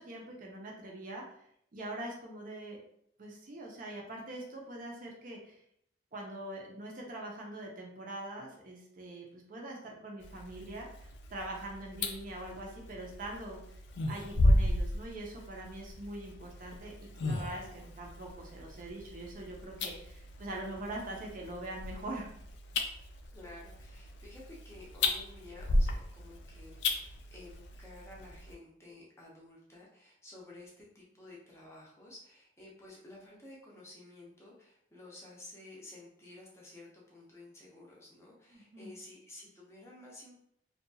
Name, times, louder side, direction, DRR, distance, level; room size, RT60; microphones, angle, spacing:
voice 1, 0.0-1.4 1.7-2.8 3.2-5.6 6.1-13.6 14.1-22.3 38.5-39.0, right 1 dB, 45° right, -1 dB, 0.5 m, -43 dB
sound 1, 10.2-28.5, left 1 dB, 65° left, 0.3 m, -35 dB
voice 2, 23.3-40.3, left 2 dB, 15° left, -4 dB, 0.5 m, -52 dB
2.7 x 2.2 x 2.6 m, 0.70 s
head